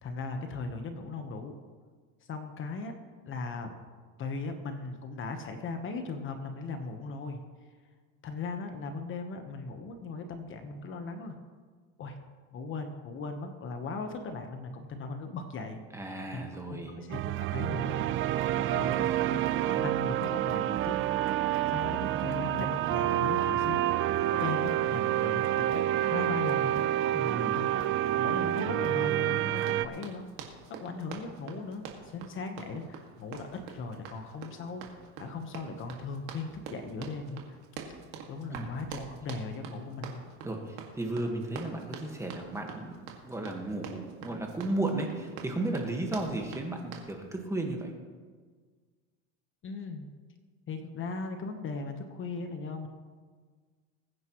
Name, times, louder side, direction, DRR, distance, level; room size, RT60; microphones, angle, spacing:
voice 1, 0.0-1.5 2.2-2.9 3.3-3.7 4.2-7.4 8.2-11.3 12.0-12.2 12.5-15.8 16.3-18.1 18.7-21.2 21.7-23.8 24.3-26.9 27.5-30.2 30.7-34.8 35.2-37.6 38.3-40.2 49.6-50.1 50.7-52.9, left 3 dB, 35° left, 6 dB, 1.2 m, -38 dB
voice 2, 15.9-17.0 27.1-27.7 38.5-38.7 40.4-47.9, right 2 dB, 10° right, 2 dB, 1.6 m, -35 dB
sound 1, 17.1-29.9, right 13 dB, 40° right, 0.5 m, -28 dB
Run, 29.6-47.1, right 6 dB, 80° right, 2.2 m, -45 dB
21.0 x 9.6 x 3.1 m, 1.5 s
supercardioid pair, 130°, 34 cm